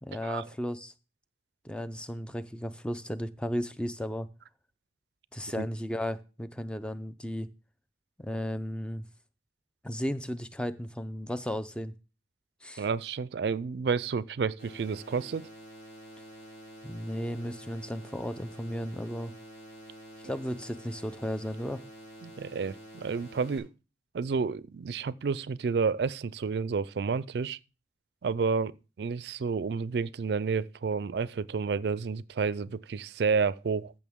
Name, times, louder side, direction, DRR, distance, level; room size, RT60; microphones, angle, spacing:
voice 1, 0.0-0.9 1.6-4.3 5.3-7.5 8.2-9.0 9.8-11.9 12.6-12.8 16.8-19.3 20.2-21.8, equal, 5° left, 0.5 m, -34 dB
voice 2, 12.8-15.5 22.2-23.7 24.1-27.6 28.2-33.9, right 5 dB, 70° right, 0.4 m, -30 dB
sound 1, 14.6-23.6, right 1 dB, 65° left, 4.5 m, -48 dB
14.5 x 6.2 x 3.6 m
head